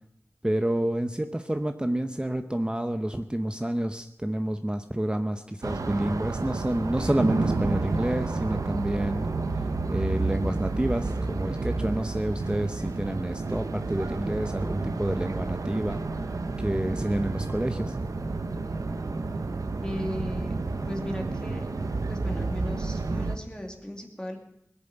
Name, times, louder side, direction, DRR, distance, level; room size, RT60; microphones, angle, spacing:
voice 1, 0.4-9.3 9.5-18.0, right 1 dB, 15° right, 7 dB, 0.7 m, -29 dB
sound 1, 5.6-23.4, right 3 dB, 90° right, 0.9 m, -30 dB
voice 2, 19.8-20.6 20.9-21.7 22.1-24.4, left 1 dB, 15° left, 1 dB, 2.4 m, -36 dB
19.5 x 7.1 x 8.0 m, 0.79 s
wide cardioid pair, 60°, 6 cm